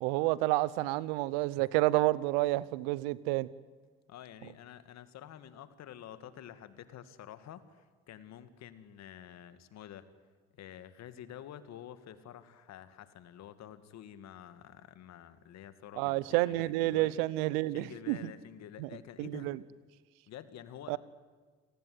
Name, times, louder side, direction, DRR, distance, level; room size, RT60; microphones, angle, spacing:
voice 1, 0.0-3.5 16.0-18.3 18.8-18.9 19.2-19.6 20.9-21.0, right 18 dB, 85° right, 20 dB, 0.9 m, -29 dB
voice 2, 4.1-10.1 10.5-17.2 17.7-19.5 20.3-21.0, left 10 dB, 65° left, 12 dB, 2.2 m, -49 dB
29.0 x 18.5 x 9.6 m, 1.5 s
supercardioid pair, 65°, 29 cm